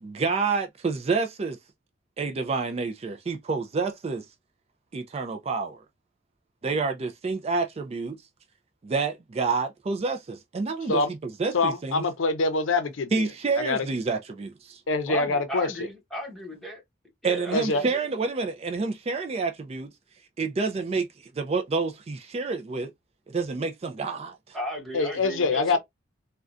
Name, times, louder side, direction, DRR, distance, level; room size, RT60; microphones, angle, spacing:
voice 1, 0.0-1.6 2.2-4.3 4.9-5.8 6.6-8.2 8.8-11.0 11.4-12.0 13.1-14.8 17.2-19.9 20.4-21.1 21.3-22.9 23.3-24.6, right 4 dB, 30° right, 0.3 m, -28 dB
voice 2, 11.5-13.3 13.6-13.9 14.9-15.9 17.5-17.8 24.9-25.8, left 3 dB, 75° left, 0.6 m, -25 dB
voice 3, 15.1-16.8 17.2-18.1 24.5-25.8, equal, ahead, 1.1 m, -35 dB
3.6 x 2.2 x 2.4 m
head